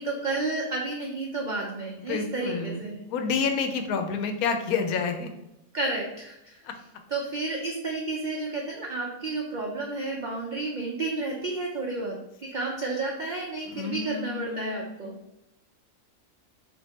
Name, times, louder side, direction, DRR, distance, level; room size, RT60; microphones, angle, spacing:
voice 1, 0.0-3.0 5.7-6.6 7.1-12.2 12.5-15.2, right 3 dB, 85° right, -2 dB, 0.4 m, -31 dB
voice 2, 2.0-5.3 6.6-6.7 13.7-15.1, left 5 dB, 80° left, 6 dB, 1.0 m, -29 dB
3.5 x 2.6 x 4.0 m, 0.85 s
omnidirectional pair, 1.5 m